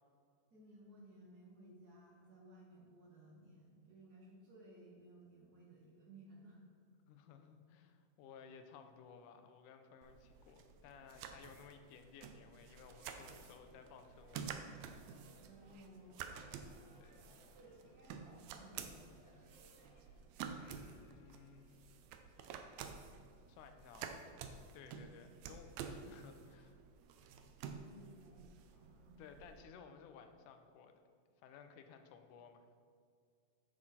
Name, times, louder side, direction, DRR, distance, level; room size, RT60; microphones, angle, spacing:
voice 1, 0.5-6.6 15.4-16.3 17.2-19.2 27.8-29.3, right 1 dB, 50° right, -4 dB, 1.1 m, -59 dB
voice 2, 7.1-14.7 15.0-15.2 17.0-17.5 20.0-20.2 20.5-21.9 23.5-24.2 24.7-26.8 29.2-30.9 31.4-32.7, left 6 dB, 75° left, 6 dB, 2.1 m, -58 dB
sound 1, 10.0-29.6, right 7 dB, 85° right, 1.5 m, -51 dB
sound 2, 12.9-20.0, equal, 5° left, 0.6 m, -68 dB
9.7 x 6.5 x 4.2 m, 2.2 s
omnidirectional pair, 3.8 m